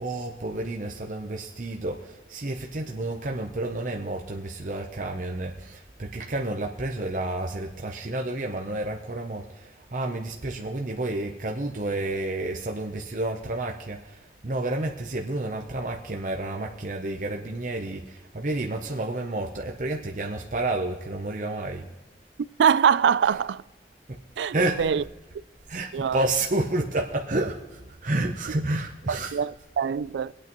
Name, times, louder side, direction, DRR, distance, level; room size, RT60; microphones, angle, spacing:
voice 1, 0.0-21.9 24.1-24.2 24.5-25.0 25.7-29.4, right 2 dB, 45° right, 0.8 m, -30 dB
voice 2, 22.6-23.6 24.4-25.0 25.9-26.2 29.1-30.3, right 7 dB, 85° right, 0.3 m, -23 dB
23.0 x 8.5 x 3.0 m
head